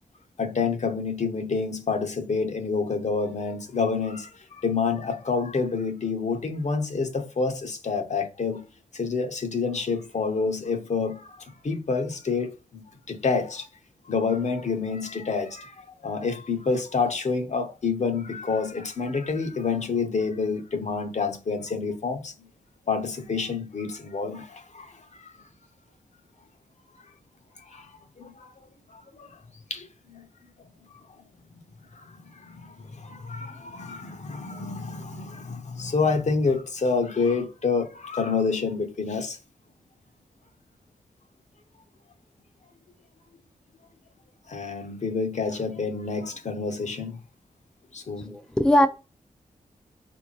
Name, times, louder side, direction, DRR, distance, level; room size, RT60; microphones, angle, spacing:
voice 1, 0.4-8.6 8.9-12.8 13.1-13.7 14.1-22.3 22.9-25.3 27.7-27.9 28.2-28.5 28.9-29.3 29.7-30.2 31.9-39.4 44.5-47.2 47.9-48.3, left 4 dB, 50° left, 0.7 m, -28 dB
voice 2, 48.2-48.9, left 1 dB, 5° left, 0.4 m, -20 dB
3.4 x 2.6 x 3.0 m
cardioid pair, 55°, 15 cm